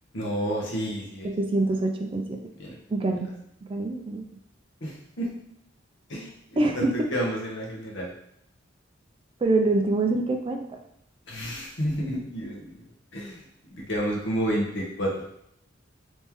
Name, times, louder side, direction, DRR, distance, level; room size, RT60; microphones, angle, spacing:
voice 1, 0.1-1.3 2.6-2.8 4.8-5.3 6.1-8.1 11.3-12.9 13.1-13.4 13.7-15.1, equal, 65° left, -2 dB, 1.0 m, -30 dB
voice 2, 1.2-2.4 2.9-3.3 3.7-4.2 6.6-6.9 9.4-10.7, right 2 dB, 30° right, 3 dB, 0.4 m, -25 dB
3.5 x 3.1 x 3.0 m, 0.73 s
head